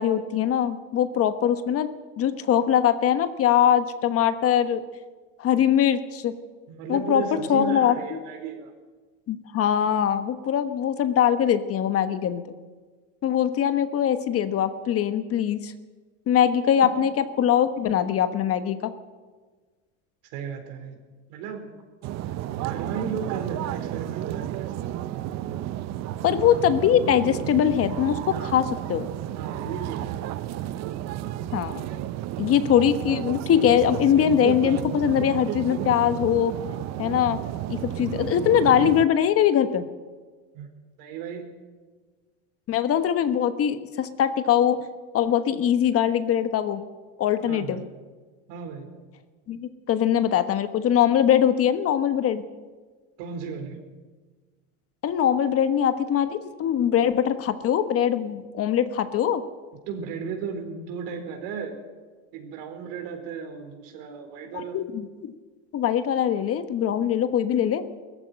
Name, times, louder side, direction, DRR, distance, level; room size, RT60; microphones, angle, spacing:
voice 1, 0.0-1.9 2.2-4.8 5.4-6.3 6.9-7.2 7.5-8.2 9.3-12.4 13.2-15.7 16.3-18.9 26.2-29.1 31.5-31.8 32.4-36.5 37.0-37.4 37.7-39.9 42.7-44.8 45.1-46.8 47.2-47.8 49.5-52.4 55.0-59.4 64.5-65.3 65.7-67.8, left 9 dB, 40° left, 10 dB, 1.3 m, -22 dB
voice 2, 6.7-8.7 16.8-16.9 20.3-21.0 21.3-21.7 22.6-24.9 28.3-28.6 29.3-30.2 40.5-40.7 41.0-41.5 47.5-47.8 48.5-48.9 53.2-53.8 59.9-61.8 62.3-64.8, right 6 dB, 75° right, 6 dB, 4.3 m, -34 dB
sound 1, 22.0-39.1, right 13 dB, 45° right, 0.8 m, -32 dB
19.5 x 14.5 x 9.6 m, 1.4 s
supercardioid pair, 135°, 37 cm